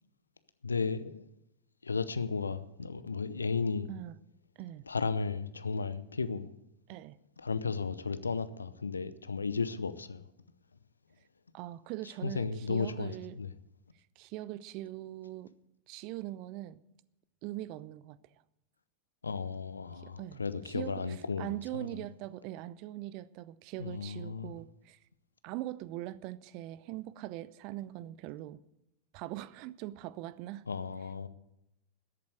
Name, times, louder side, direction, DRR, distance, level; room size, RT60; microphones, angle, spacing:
voice 1, 0.6-1.2 1.8-3.9 4.9-6.5 7.4-10.2 12.2-13.5 19.2-21.9 23.8-24.5 30.7-31.3, left 4 dB, 75° left, 0.7 m, -34 dB
voice 2, 11.5-13.4 14.2-15.5 15.9-16.8 17.4-18.2 20.0-20.4 20.7-25.0 25.4-28.6 29.1-30.6, right 15 dB, 45° right, 0.6 m, -41 dB
13.5 x 8.5 x 7.9 m
figure-of-eight pair, 90°, 0 cm